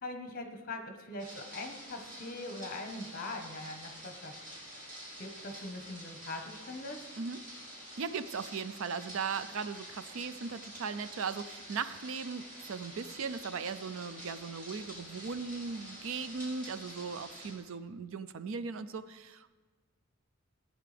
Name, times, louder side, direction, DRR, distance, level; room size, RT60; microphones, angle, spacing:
voice 1, 0.0-4.4 5.2-7.1, left 2 dB, 40° left, 4 dB, 1.2 m, -42 dB
sound 1, 1.2-17.5, equal, 35° right, 4.3 m, -48 dB
voice 2, 8.0-19.5, right 5 dB, 60° right, 13 dB, 0.4 m, -38 dB
17.0 x 9.2 x 3.4 m, 1.3 s
head